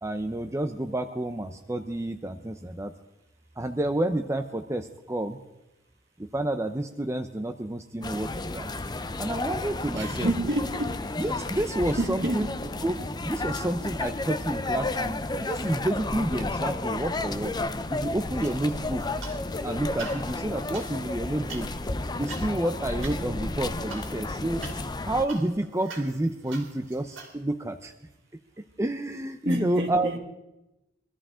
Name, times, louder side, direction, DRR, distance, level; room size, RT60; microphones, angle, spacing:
voice 1, 0.0-2.9 3.6-5.4 6.2-8.7 9.2-10.3 11.2-12.5 12.8-13.0 13.2-17.6 17.9-19.0 19.6-21.7 22.2-24.6 25.0-27.9 28.8-30.1, right 1 dB, 15° right, 6 dB, 0.7 m, -29 dB
sound 1, 8.0-25.3, left 2 dB, 20° left, 0.6 m, -32 dB
voice 2, 9.9-11.0 12.0-12.5 29.4-30.2, right 1 dB, 65° right, 2 dB, 2.4 m, -28 dB
sound 2, 18.4-19.6 19.9-27.3, right 4 dB, 90° right, 3.4 m, -45 dB
23.0 x 14.0 x 3.7 m, 0.92 s
head